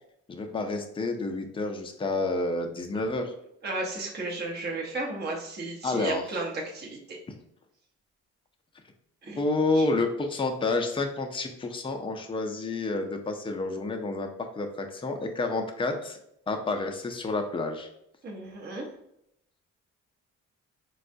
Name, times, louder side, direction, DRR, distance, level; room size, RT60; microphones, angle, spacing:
voice 1, 0.3-3.3 5.8-6.2 9.4-16.2 16.5-17.9, left 3 dB, 15° left, 4 dB, 0.5 m, -29 dB
voice 2, 3.6-7.0 9.2-9.4 9.7-9.9 18.2-18.9, right 2 dB, 35° right, -2 dB, 0.8 m, -33 dB
4.0 x 2.3 x 2.6 m, 0.76 s
cardioid pair, 90°, 30 cm